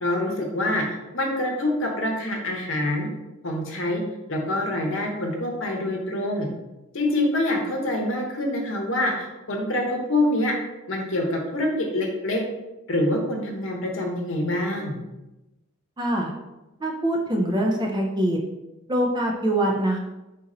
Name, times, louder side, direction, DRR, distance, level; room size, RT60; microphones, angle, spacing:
voice 1, 0.0-3.1 3.4-4.0 4.3-6.5 6.9-10.5 10.9-12.4 12.9-15.0, left 1 dB, 65° left, 1 dB, 0.8 m, -25 dB
voice 2, 16.0-16.3 16.8-18.4 18.9-20.0, right 1 dB, 20° right, 0 dB, 0.4 m, -23 dB
3.9 x 2.6 x 4.1 m, 1.0 s
head